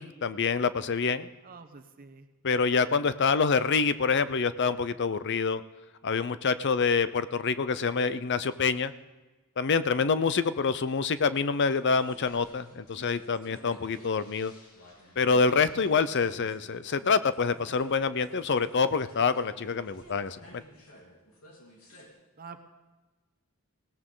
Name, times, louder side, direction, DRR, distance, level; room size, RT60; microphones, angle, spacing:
voice 1, 0.0-1.3 2.4-5.6 6.0-8.9 9.6-14.5 15.2-20.6, left 5 dB, 55° left, 14 dB, 0.6 m, -26 dB
voice 2, 1.4-2.3 21.8-21.9 22.4-22.6, right 4 dB, 45° right, 7 dB, 0.9 m, -47 dB
sound 1, 11.7-22.1, equal, 80° left, 3.7 m, -54 dB
19.5 x 17.0 x 3.8 m, 1.2 s
head